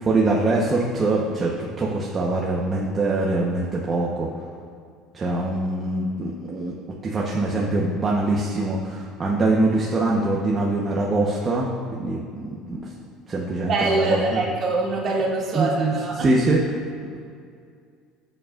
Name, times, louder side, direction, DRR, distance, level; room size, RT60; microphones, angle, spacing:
voice 1, 0.0-4.3 5.1-6.7 7.0-12.8 13.3-14.4 15.5-16.6, right 2 dB, 30° right, -3 dB, 1.0 m, -23 dB
voice 2, 13.5-16.4, right 2 dB, 45° right, -3 dB, 2.2 m, -24 dB
13.5 x 7.8 x 2.5 m, 2.3 s
cardioid pair, 120°, 0 cm